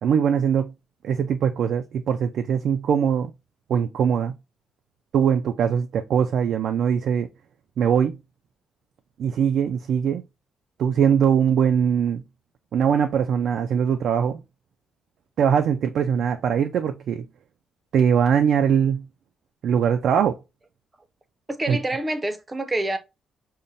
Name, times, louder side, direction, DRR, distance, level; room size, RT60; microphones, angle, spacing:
voice 1, 0.0-0.7 1.0-3.3 3.7-4.3 5.1-7.3 7.8-8.2 9.2-10.2 10.8-12.2 12.7-14.4 15.4-17.3 17.9-19.0 19.6-20.4 21.7-21.8, right 7 dB, 65° right, 0.3 m, -21 dB
voice 2, 21.5-23.0, right 1 dB, 20° right, 0.6 m, -27 dB
5.4 x 2.1 x 2.5 m
cardioid pair, 135°, 0 cm